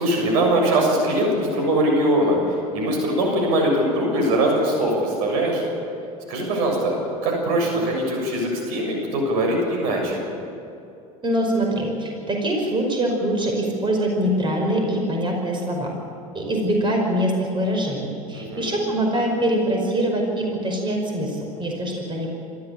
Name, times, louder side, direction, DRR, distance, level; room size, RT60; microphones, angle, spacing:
voice 1, 0.0-5.6 6.3-6.9 7.2-10.2 18.3-18.9, right 1 dB, 70° right, 1 dB, 7.1 m, -22 dB
voice 2, 11.2-15.9 16.3-22.3, right 1 dB, 25° right, 1 dB, 5.2 m, -23 dB
26.5 x 13.5 x 8.8 m, 2.6 s
hypercardioid pair, 80°, 19 cm